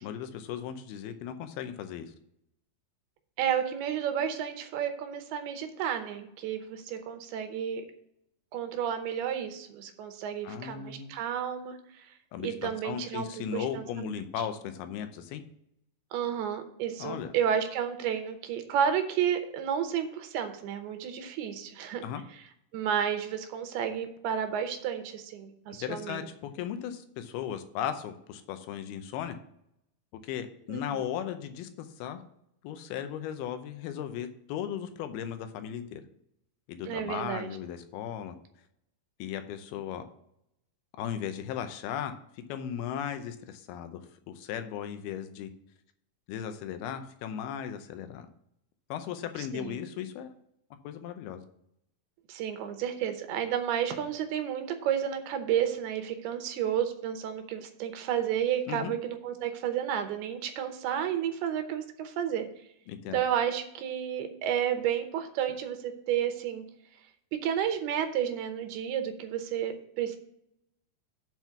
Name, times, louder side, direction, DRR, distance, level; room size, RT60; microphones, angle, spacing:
voice 1, 0.0-2.1 10.4-11.1 12.3-15.4 17.0-17.3 22.0-22.2 25.8-29.4 30.2-32.2 32.6-36.0 36.7-38.4 39.2-40.0 41.0-42.2 42.5-45.5 46.3-48.3 48.9-50.3 50.8-51.4 58.7-58.9 62.9-63.2, left 9 dB, 85° left, 8 dB, 2.7 m, -36 dB
voice 2, 3.4-7.8 8.5-12.1 12.4-14.2 16.1-22.0 22.7-26.3 30.7-31.1 36.9-37.6 49.5-49.8 52.3-62.5 63.1-66.6 67.4-70.2, right 9 dB, 90° right, 7 dB, 2.9 m, -31 dB
7.8 x 4.5 x 6.9 m, 0.77 s
omnidirectional pair, 4.4 m